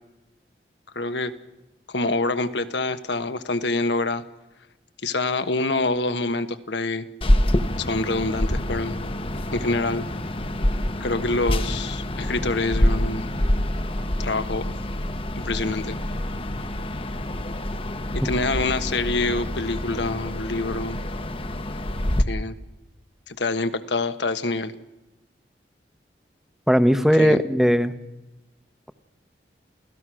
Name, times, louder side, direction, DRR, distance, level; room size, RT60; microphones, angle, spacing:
voice 1, 0.9-1.3 1.9-4.2 5.0-7.1 7.8-9.0 9.5-10.0 11.0-13.3 14.2-14.7 15.4-16.0 18.1-21.0 22.3-22.5 23.3-24.7 27.2-27.4, left 2 dB, 85° left, 10 dB, 1.3 m, -26 dB
sound 1, 7.2-22.2, left 1 dB, 30° left, 0.9 m, -26 dB
voice 2, 26.7-27.9, equal, ahead, 11 dB, 0.9 m, -18 dB
29.0 x 17.0 x 6.3 m, 1.0 s
head